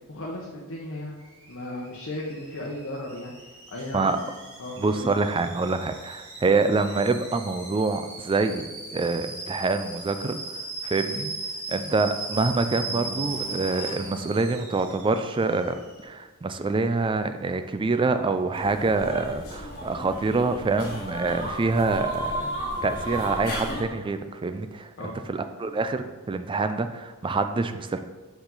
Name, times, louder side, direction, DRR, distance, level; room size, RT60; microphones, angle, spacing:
voice 1, 0.1-1.2 1.5-3.3 3.7-4.2 4.6-5.1 25.0-25.1, left 1 dB, 60° left, -3 dB, 0.9 m, -35 dB
Alarm / Boiling, 1.2-16.0, right 3 dB, 65° right, 1.6 m, -38 dB
voice 2, 4.8-8.7 8.9-11.3 11.7-22.5 22.8-28.0, right 3 dB, 25° right, 9 dB, 0.3 m, -26 dB
sound 1, 12.0-15.1, right 1 dB, 5° right, 2.2 m, -43 dB
sound 2, 18.5-23.8, equal, 45° left, 1.5 m, -33 dB
6.7 x 4.7 x 3.9 m, 1.3 s
head